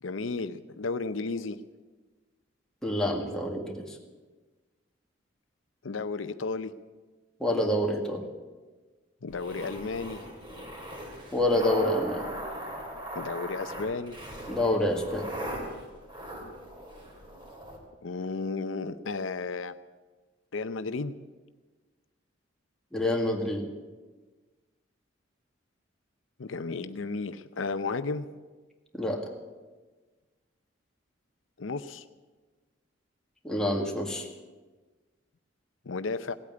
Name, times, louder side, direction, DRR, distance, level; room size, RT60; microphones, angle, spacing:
voice 1, 0.0-1.6 5.8-6.7 9.2-10.2 13.1-14.2 18.0-19.8 20.5-21.1 26.4-28.3 31.6-32.0 35.9-36.3, left 4 dB, 85° left, 11 dB, 0.7 m, -33 dB
voice 2, 2.8-4.0 7.4-8.2 11.3-12.2 14.5-15.3 22.9-23.6 28.9-29.2 33.4-34.3, left 1 dB, 5° left, 0 dB, 2.0 m, -27 dB
sound 1, 9.3-17.8, right 1 dB, 25° right, 3.1 m, -39 dB
17.5 x 8.6 x 9.5 m, 1.3 s
head